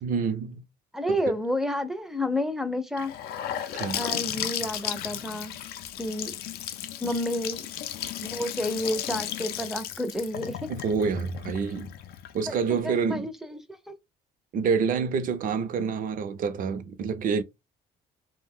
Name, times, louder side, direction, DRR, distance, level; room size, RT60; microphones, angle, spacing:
voice 1, 0.0-0.6 1.1-1.3 3.7-4.0 10.7-11.9 12.3-13.3 14.5-17.4, right 5 dB, 55° right, 0.6 m, -27 dB
voice 2, 0.9-3.1 3.9-5.5 6.0-6.4 7.0-7.7 8.3-10.7 12.8-13.9, left 1 dB, ahead, 0.5 m, -30 dB
Gurgling / Sink (filling or washing) / Bathtub (filling or washing), 3.0-12.8, left 11 dB, 65° left, 0.4 m, -35 dB
2.5 x 2.1 x 3.5 m
cardioid pair, 110°, 17 cm